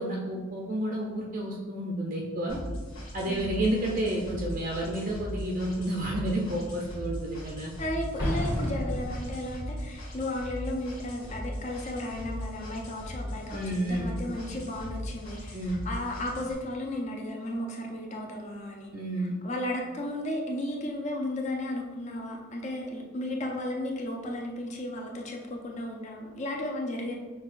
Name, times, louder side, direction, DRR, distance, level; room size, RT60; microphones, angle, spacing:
voice 1, 0.0-2.6 3.1-7.7 13.5-14.1 15.5-15.8 18.9-19.3, right 1 dB, 40° right, -2 dB, 0.4 m, -30 dB
sound 1, 2.5-16.5, equal, 85° left, 1.5 m, -39 dB
voice 2, 3.3-3.6 7.8-18.9 19.2-27.2, left 1 dB, 35° left, 0 dB, 0.5 m, -34 dB
Explosion, 8.2-9.8, equal, 60° left, 1.4 m, -31 dB
6.2 x 2.2 x 2.5 m, 1.3 s
head